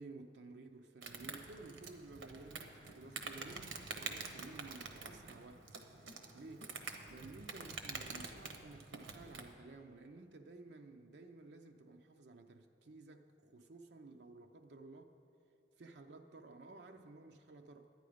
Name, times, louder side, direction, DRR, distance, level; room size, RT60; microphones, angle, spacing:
voice 1, 0.0-5.7 6.0-6.8 7.1-15.1 15.8-17.9, right 3 dB, 65° right, 4 dB, 0.5 m, -54 dB
Insect, 1.0-9.5, right 4 dB, 85° right, 0.9 m, -47 dB
12.0 x 9.2 x 5.0 m, 2.9 s
head